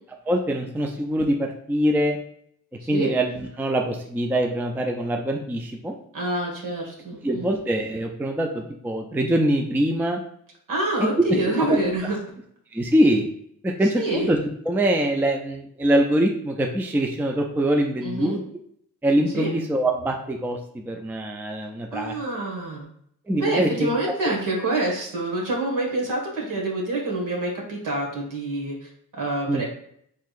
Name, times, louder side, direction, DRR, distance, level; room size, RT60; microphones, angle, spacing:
voice 1, 0.3-2.2 2.9-6.0 7.2-10.2 11.0-11.1 11.4-11.8 12.7-13.3 13.6-14.4 14.7-18.4 19.0-22.2 23.3-23.9 29.5-29.6, right 1 dB, 5° right, 3 dB, 0.4 m, -23 dB
voice 2, 6.1-7.5 10.7-12.2 13.9-14.3 18.0-18.4 19.3-19.5 21.9-22.8 23.3-29.6, right 2 dB, 65° right, -1 dB, 1.6 m, -27 dB
4.6 x 3.7 x 2.4 m, 0.67 s
cardioid pair, 105°, 34 cm